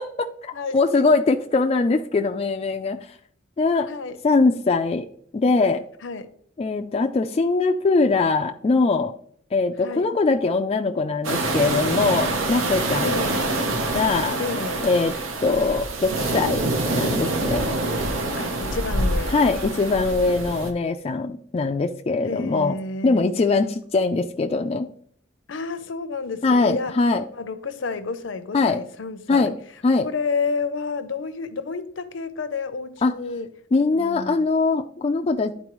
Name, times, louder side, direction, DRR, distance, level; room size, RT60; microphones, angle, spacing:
voice 1, 0.0-3.0 3.6-3.9 4.2-5.0 5.3-5.8 6.6-9.1 9.5-13.1 13.9-14.4 14.8-15.1 15.4-16.6 16.9-17.7 19.3-22.8 23.0-24.9 26.4-27.2 28.5-28.8 29.3-29.5 29.8-30.1 33.0-33.1 33.7-35.5, left 3 dB, 30° left, 0.3 m, -21 dB
voice 2, 3.9-4.2 6.0-6.3 9.8-10.1 13.0-13.5 14.4-14.9 18.4-19.3 22.3-23.3 25.5-26.9 27.3-29.5 30.0-33.5 33.9-34.4, left 4 dB, 65° left, 0.6 m, -30 dB
sound 1, 11.2-20.7, right 2 dB, 85° right, 0.9 m, -26 dB
11.0 x 4.3 x 3.0 m
head